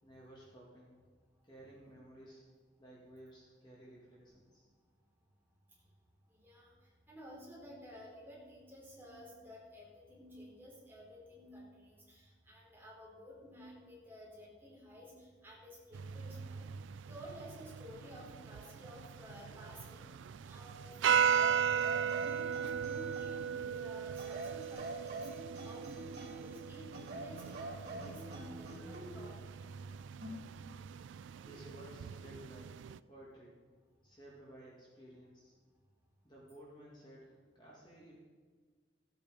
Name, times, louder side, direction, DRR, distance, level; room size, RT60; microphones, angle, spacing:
voice 1, 0.0-1.0 1.4-2.4 2.8-4.7 31.4-32.8 33.1-33.6 34.0-35.5 36.2-38.1, right 1 dB, 25° left, -6 dB, 2.3 m, -55 dB
voice 2, 6.3-6.7 7.1-16.7 17.1-20.1 20.5-29.6, equal, 10° right, -5 dB, 4.0 m, -53 dB
sound 1, 15.9-33.0, right 7 dB, 75° right, 0.3 m, -37 dB
sound 2, 21.2-23.5 24.2-26.5 26.9-29.1 30.2-30.5, right 1 dB, 55° right, 2.7 m, -46 dB
15.5 x 8.5 x 5.3 m, 1.5 s
head